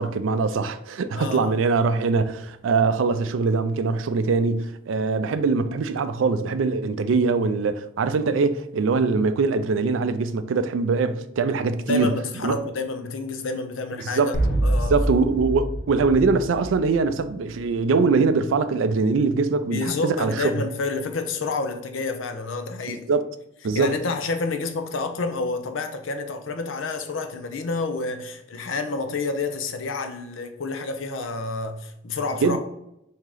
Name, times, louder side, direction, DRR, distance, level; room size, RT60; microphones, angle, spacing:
voice 1, 0.0-12.1 12.4-12.6 14.0-14.3 14.9-20.6 22.9-23.3 23.6-24.0 32.4-32.6, right 4 dB, 90° right, 0.4 m, -22 dB
voice 2, 1.1-1.5 11.7-14.3 14.6-14.9 19.6-23.1 23.7-32.6, left 3 dB, 90° left, 0.6 m, -29 dB
sound 1, 14.3-17.2, right 1 dB, 55° left, 0.8 m, -25 dB
3.6 x 2.8 x 4.8 m
head